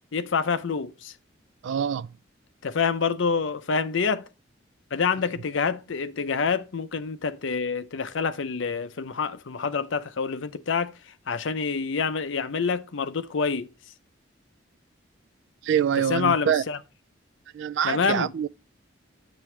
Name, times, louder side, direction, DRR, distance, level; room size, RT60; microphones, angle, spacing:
voice 1, 0.1-1.1 2.6-4.3 4.9-10.9 11.3-13.7 16.1-16.8 17.8-18.3, left 5 dB, 65° left, 0.6 m, -27 dB
voice 2, 1.6-2.1 15.6-16.6 17.5-18.5, right 8 dB, 65° right, 0.3 m, -25 dB
7.5 x 7.0 x 3.2 m
head